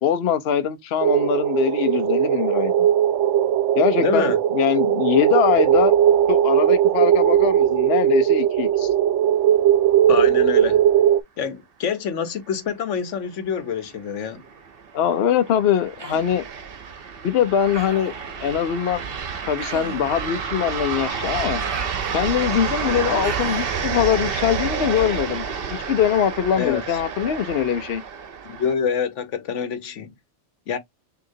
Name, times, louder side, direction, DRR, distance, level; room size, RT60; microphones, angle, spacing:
voice 1, 0.0-2.9 3.8-5.9 6.3-8.9 14.9-16.5 17.2-18.1 18.4-19.0 19.5-21.6 22.1-25.4 25.7-28.0, left 9 dB, 65° left, 0.9 m, -22 dB
sound 1, 1.0-11.2, right 10 dB, 90° right, 0.9 m, -18 dB
voice 2, 4.0-4.4 10.1-10.8 11.4-14.4 26.6-27.0 28.4-30.1 30.7-30.8, left 7 dB, 85° left, 1.2 m, -26 dB
sound 2, 13.9-28.7, right 6 dB, 55° right, 1.0 m, -29 dB
Human voice, 16.0-16.4 17.7-18.2 19.6-20.2 21.6-22.5 23.2-23.8, right 4 dB, 35° right, 0.4 m, -37 dB
6.4 x 2.8 x 2.6 m
omnidirectional pair, 1.2 m